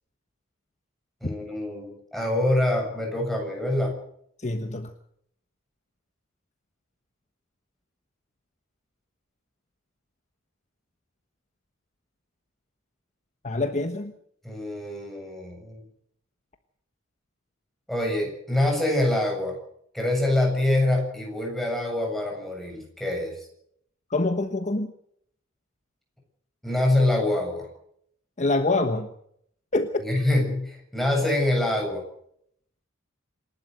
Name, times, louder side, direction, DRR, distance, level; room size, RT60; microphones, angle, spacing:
voice 1, 1.2-4.0 14.4-15.8 17.9-19.6 19.9-23.4 26.6-27.7 30.0-32.0, left 1 dB, ahead, 0 dB, 7.4 m, -25 dB
voice 2, 4.4-4.9 13.4-14.1 24.1-24.9 28.4-29.1 29.7-30.0, left 2 dB, 35° left, 7 dB, 1.2 m, -25 dB
27.0 x 12.0 x 8.0 m, 0.70 s
head